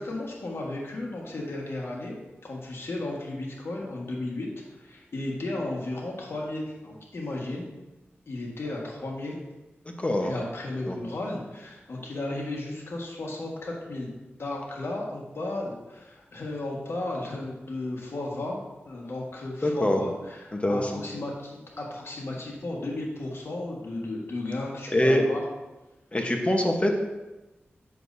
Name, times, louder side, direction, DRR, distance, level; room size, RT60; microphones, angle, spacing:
voice 1, 0.0-2.1 2.4-7.7 8.3-9.4 10.2-14.1 14.4-18.6 18.8-25.4, left 2 dB, 70° left, -2 dB, 1.6 m, -34 dB
voice 2, 9.8-10.3 10.9-11.0 19.6-20.0 20.5-21.0 24.9-25.2 26.1-27.0, left 1 dB, 30° left, 3 dB, 1.1 m, -24 dB
7.5 x 6.3 x 2.7 m, 1.1 s
cardioid pair, 50°, 4 cm